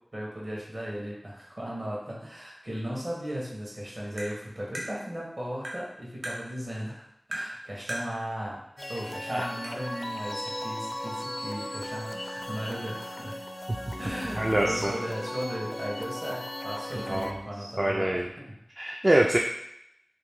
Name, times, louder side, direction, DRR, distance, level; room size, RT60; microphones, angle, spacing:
voice 1, 0.1-8.6 8.9-13.4 14.0-18.3, equal, 55° right, -4 dB, 1.3 m, -36 dB
Tap, 4.2-4.3 4.8-4.9 5.6-5.8 6.2-6.4 7.3-7.5 7.9-8.1 9.0-9.1 9.6-9.7, right 1 dB, 85° right, 0.8 m, -35 dB
sound 1, 8.8-17.3, left 1 dB, 45° left, 0.4 m, -37 dB
voice 2, 14.4-14.9 17.1-17.4 17.6-18.3 18.8-19.4, right 1 dB, 40° right, 0 dB, 0.3 m, -25 dB
2.9 x 2.6 x 3.6 m, 0.78 s
wide cardioid pair, 40°, 0 cm